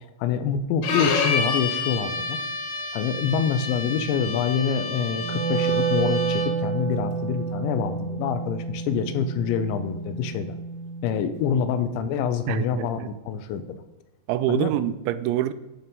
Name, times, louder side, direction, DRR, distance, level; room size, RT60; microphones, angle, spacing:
voice 1, 0.2-2.4 2.9-10.6 11.0-13.6 14.5-14.7, left 7 dB, 85° left, 10 dB, 3.0 m, -26 dB
Bowed string instrument, 0.8-6.7, left 4 dB, 60° left, 2.5 m, -29 dB
Wind instrument woodwind instrument, 5.1-11.4, right 5 dB, 60° right, 2.1 m, -29 dB
voice 2, 12.5-13.1 14.3-15.5, right 12 dB, 85° right, 13 dB, 2.8 m, -25 dB
11.0 x 4.4 x 5.4 m, 1.0 s
omnidirectional pair, 5.2 m